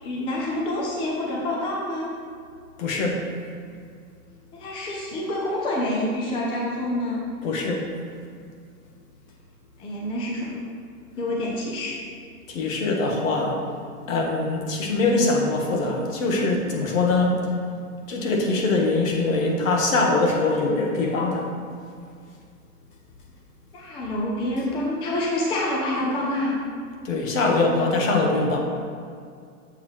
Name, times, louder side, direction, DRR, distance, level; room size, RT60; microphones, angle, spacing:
voice 1, 0.0-2.1 4.5-7.2 9.8-10.6 11.2-11.9 23.7-26.6, left 1 dB, 10° left, -3 dB, 0.6 m, -27 dB
voice 2, 2.8-3.2 7.4-7.9 12.5-13.6 14.1-17.4 18.1-21.5 27.0-28.6, left 3 dB, 60° left, 0 dB, 1.6 m, -23 dB
7.2 x 3.8 x 6.0 m, 2.2 s
hypercardioid pair, 145°, 44 cm